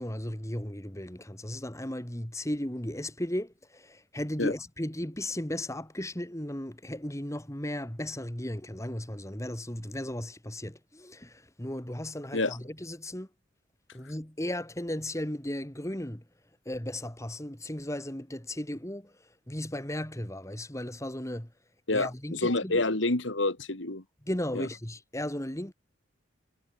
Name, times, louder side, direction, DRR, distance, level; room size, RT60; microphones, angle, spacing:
voice 1, 0.0-13.3 13.9-16.2 16.7-19.1 19.5-21.5 21.9-22.8 24.3-25.7, left 1 dB, 15° left, 2.4 m, -35 dB
voice 2, 21.9-24.0 24.5-24.7, left 2 dB, 75° left, 2.7 m, -28 dB
head